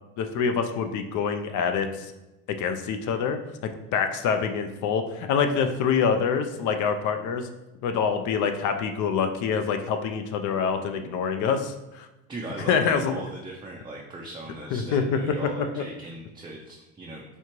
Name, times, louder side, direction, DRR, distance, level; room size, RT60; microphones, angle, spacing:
voice 1, 0.2-2.1 2.6-3.4 3.9-7.5 7.8-12.1 12.6-13.2 14.7-15.2 15.8-15.9, left 6 dB, 50° left, 7 dB, 0.5 m, -26 dB
voice 2, 12.3-17.2, right 2 dB, 15° right, -2 dB, 0.4 m, -38 dB
4.4 x 2.4 x 3.0 m, 1.0 s
supercardioid pair, 90°, 38 cm